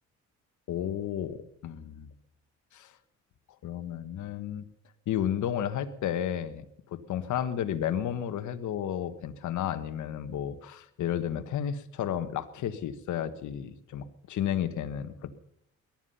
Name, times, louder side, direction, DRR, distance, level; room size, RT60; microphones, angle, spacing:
voice 1, 0.7-2.1 2.7-2.9 3.6-4.7 5.1-6.7 7.1-15.3, left 10 dB, 75° left, 10 dB, 1.4 m, -32 dB
18.0 x 12.0 x 5.6 m, 0.68 s
cardioid pair, 90°, 30 cm